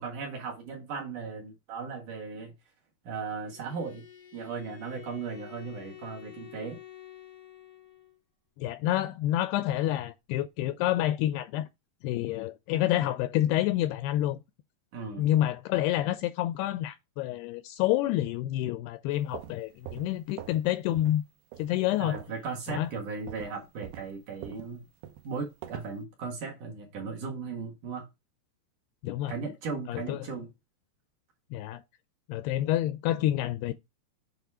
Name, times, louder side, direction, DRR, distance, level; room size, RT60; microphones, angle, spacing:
voice 1, 0.0-2.5 3.0-4.1 4.3-6.8 14.9-15.2 22.0-24.9 25.2-28.1 29.3-30.5, right 5 dB, 60° right, 2.6 m, -37 dB
Bowed string instrument, 3.4-8.2, left 12 dB, 50° left, 1.2 m, -49 dB
voice 2, 8.6-11.7 12.0-14.4 15.2-21.2 21.6-22.2 22.7-22.9 29.0-29.3 29.9-30.3 31.5-31.8 32.3-33.7, left 13 dB, 85° left, 2.4 m, -28 dB
sound 1, 19.1-20.7 20.9-21.2 21.5-22.4 22.7-22.9 23.3-26.0, right 12 dB, 75° right, 2.8 m, -44 dB
8.2 x 4.1 x 4.7 m
omnidirectional pair, 5.0 m